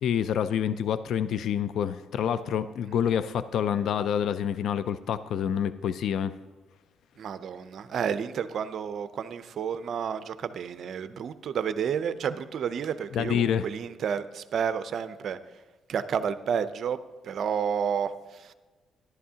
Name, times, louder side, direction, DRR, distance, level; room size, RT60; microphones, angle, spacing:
voice 1, 0.0-6.3 13.1-13.7, left 8 dB, 75° left, 14 dB, 0.3 m, -27 dB
voice 2, 7.2-15.4 15.9-17.0 17.2-18.5, right 7 dB, 60° right, 12 dB, 0.5 m, -31 dB
12.5 x 11.0 x 2.8 m, 1.3 s
cardioid pair, 90°, 0 cm